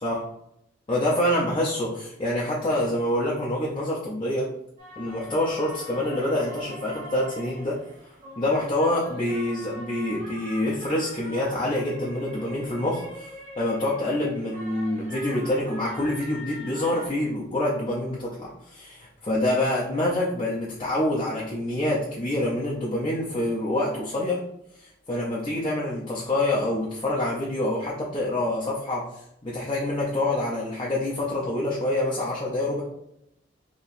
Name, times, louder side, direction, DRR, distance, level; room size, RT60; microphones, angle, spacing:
voice 1, 0.9-4.5 5.0-7.8 8.4-13.3 13.6-24.4 24.8-29.1 29.4-32.8, left 1 dB, 25° left, -5 dB, 0.5 m, -26 dB
sound 1, 4.8-17.1, equal, 40° right, 1.3 m, -43 dB
4.2 x 2.9 x 2.5 m, 0.76 s
head